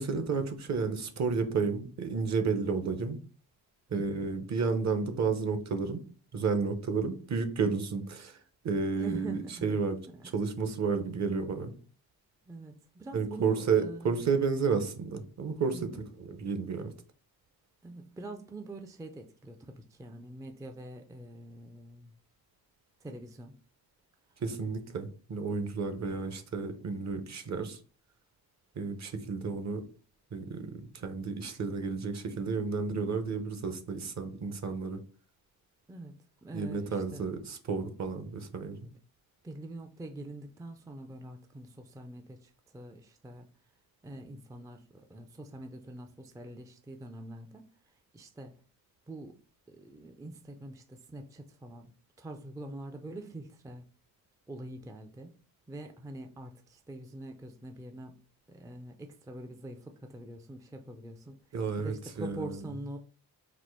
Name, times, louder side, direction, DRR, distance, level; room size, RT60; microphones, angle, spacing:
voice 1, 0.0-3.2 3.9-6.0 6.3-8.4 8.6-10.0 10.3-11.7 13.1-16.9 24.4-27.8 28.8-29.8 30.3-35.0 36.5-38.8 61.5-62.6, right 5 dB, 45° right, 9 dB, 0.7 m, -31 dB
voice 2, 3.9-4.3 8.9-9.8 10.1-10.3 12.5-14.2 15.7-16.0 17.8-22.1 23.0-23.6 35.9-36.2 36.4-37.5 38.8-38.9 39.4-43.5 44.0-47.6 48.1-48.5 49.1-49.4 49.7-51.9 52.2-53.8 54.5-55.4 55.7-58.2 58.5-61.4 61.8-63.0, right 2 dB, 10° right, 5 dB, 0.4 m, -44 dB
4.2 x 2.5 x 4.4 m, 0.39 s
cardioid pair, 115°, 37 cm